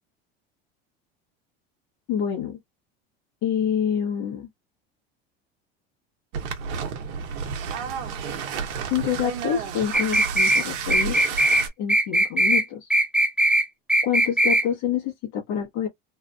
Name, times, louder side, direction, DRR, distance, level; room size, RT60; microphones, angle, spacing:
voice 1, 2.1-2.6 3.4-4.5 8.9-11.2 11.8-12.9 14.0-15.9, left 9 dB, 60° left, 1.4 m, -27 dB
sound 1, 6.3-11.7, right 7 dB, 70° right, 1.1 m, -31 dB
sound 2, 9.9-10.6 10.9-11.6 11.9-12.6 12.9-13.6 13.9-14.6, right 1 dB, 5° right, 0.4 m, -20 dB
3.4 x 2.4 x 2.2 m
supercardioid pair, 95°, 30 cm